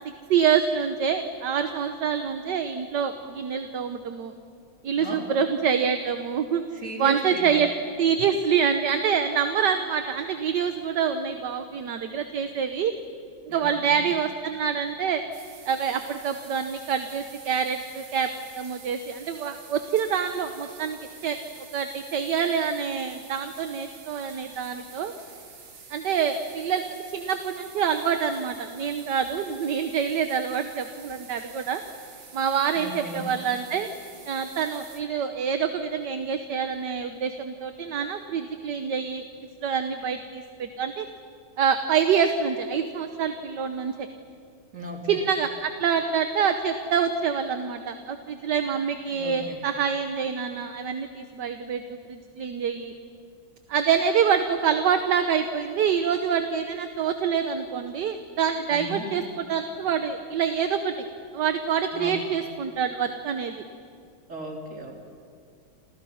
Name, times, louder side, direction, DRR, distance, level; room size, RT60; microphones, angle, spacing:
voice 1, 0.3-4.3 4.8-6.6 7.0-7.7 8.0-12.9 13.5-15.2 15.6-18.3 18.5-21.4 21.7-25.1 25.9-31.8 32.3-33.9 34.3-39.2 39.6-41.1 41.6-44.1 45.1-52.9 53.7-60.9 61.3-63.6, right 7 dB, 60° right, 7 dB, 1.6 m, -26 dB
voice 2, 6.7-7.5 13.5-14.0 32.7-33.3 44.7-45.2 49.1-49.6 58.7-59.1 61.9-62.2 64.3-64.9, right 1 dB, 35° right, 0 dB, 3.9 m, -36 dB
sound 1, 15.3-35.0, right 5 dB, 80° right, 3.0 m, -48 dB
29.0 x 28.5 x 5.8 m, 2.3 s
omnidirectional pair, 2.2 m